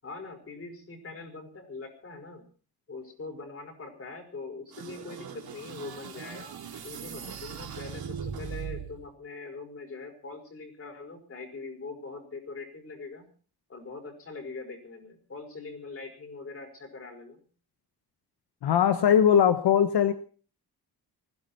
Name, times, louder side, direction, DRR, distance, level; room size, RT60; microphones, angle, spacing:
voice 1, 0.0-2.4 2.9-6.6 6.8-13.3 13.7-17.4, left 3 dB, 35° left, 5 dB, 5.4 m, -42 dB
sound 1, 4.7-9.1, right 7 dB, 70° right, 4.0 m, -39 dB
voice 2, 18.6-20.1, left 8 dB, 85° left, 10 dB, 1.2 m, -20 dB
20.5 x 16.0 x 4.4 m, 0.40 s
wide cardioid pair, 165°, 39 cm